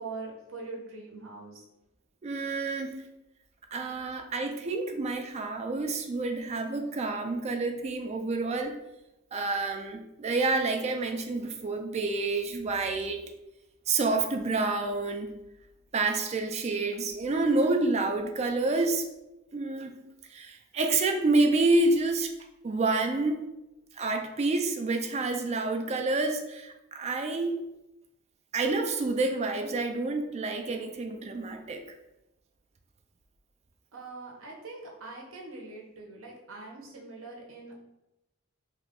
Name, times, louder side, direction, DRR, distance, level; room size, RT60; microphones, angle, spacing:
voice 1, 0.0-1.6 33.9-37.8, right 3 dB, 70° right, 0 dB, 0.8 m, -42 dB
voice 2, 2.2-3.1 3.7-8.7 9.3-13.2 13.9-15.3 15.9-19.1 19.5-20.0 20.3-22.3 22.6-23.5 24.0-27.6 28.5-31.8, right 3 dB, 30° right, 5 dB, 0.3 m, -28 dB
2.7 x 2.3 x 3.6 m, 0.95 s
head